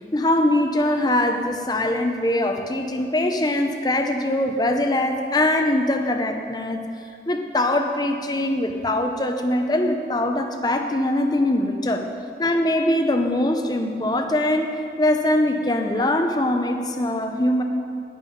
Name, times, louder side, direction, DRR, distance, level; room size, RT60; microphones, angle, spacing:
voice 1, 0.1-6.9 7.3-12.1 12.4-17.6, left 1 dB, 25° left, 5 dB, 0.7 m, -22 dB
11.0 x 9.2 x 5.2 m, 2.4 s
head